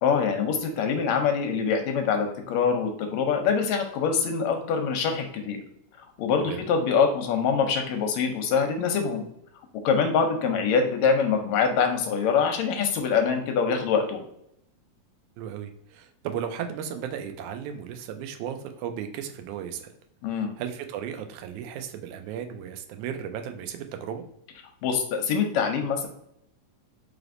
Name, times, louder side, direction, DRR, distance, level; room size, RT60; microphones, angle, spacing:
voice 1, 0.0-5.6 6.2-9.3 9.8-14.3 20.2-20.5 24.8-26.1, left 6 dB, 80° left, 4 dB, 1.8 m, -24 dB
voice 2, 15.4-19.9 20.3-24.2, right 8 dB, 90° right, 6 dB, 2.0 m, -35 dB
4.8 x 3.3 x 2.5 m, 0.74 s
omnidirectional pair, 3.3 m